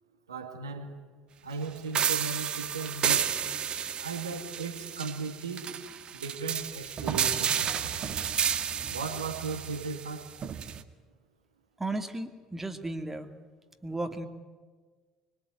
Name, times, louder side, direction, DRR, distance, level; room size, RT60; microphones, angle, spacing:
voice 1, 0.3-1.0 1.4-3.4 4.0-5.7 6.1-8.0 8.9-10.3, right 4 dB, 80° right, 2.2 m, -37 dB
sound 1, 1.9-10.8, right 8 dB, 40° right, 1.6 m, -31 dB
voice 2, 11.8-13.3 13.8-14.3, right 2 dB, 10° right, 2.4 m, -34 dB
25.0 x 22.5 x 9.4 m
figure-of-eight pair, 60°, 2 cm